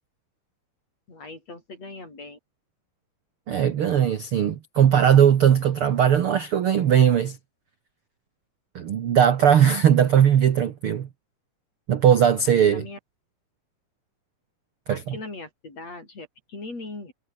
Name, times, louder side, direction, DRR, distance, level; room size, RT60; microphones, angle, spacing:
voice 1, 1.1-2.4 12.6-13.0 14.9-17.1, left 3 dB, 45° left, 9.2 m, -39 dB
voice 2, 3.5-7.4 8.7-11.1 11.9-12.8 14.9-15.2, right 9 dB, 60° right, 1.4 m, -19 dB
omnidirectional pair, 4.3 m